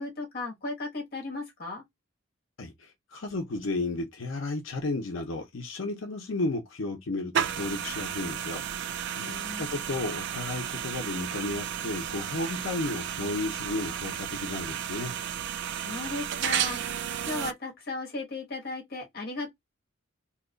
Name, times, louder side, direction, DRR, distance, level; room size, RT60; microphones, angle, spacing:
voice 1, 0.0-1.8 9.2-9.7 15.8-16.9 17.2-19.5, left 3 dB, 50° left, 1.1 m, -36 dB
voice 2, 2.6-15.1, left 2 dB, 70° left, 0.7 m, -33 dB
sound 1, 7.3-17.5, right 9 dB, 55° right, 0.3 m, -33 dB
2.8 x 2.3 x 3.8 m
head